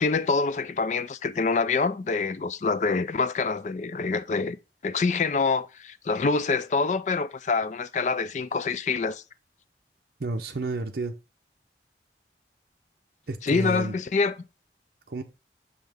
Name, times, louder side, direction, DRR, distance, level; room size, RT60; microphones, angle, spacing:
voice 1, 0.0-4.6 4.8-9.2 13.4-14.4, left 4 dB, 40° left, 0.4 m, -26 dB
voice 2, 10.2-11.2 13.3-13.9 15.1-15.2, right 2 dB, 55° right, 0.6 m, -30 dB
6.3 x 5.6 x 3.4 m
head